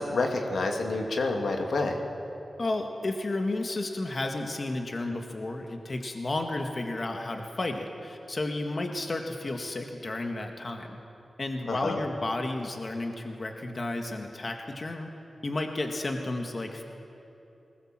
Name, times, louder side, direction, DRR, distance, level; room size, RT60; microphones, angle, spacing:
voice 1, 0.0-2.0 11.7-12.0, left 3 dB, 80° left, 3 dB, 2.2 m, -28 dB
voice 2, 2.6-11.0 11.4-15.1 15.4-16.8, left 2 dB, 45° left, 4 dB, 1.9 m, -32 dB
20.0 x 19.5 x 7.6 m, 2.9 s
cardioid pair, 70°, 0 cm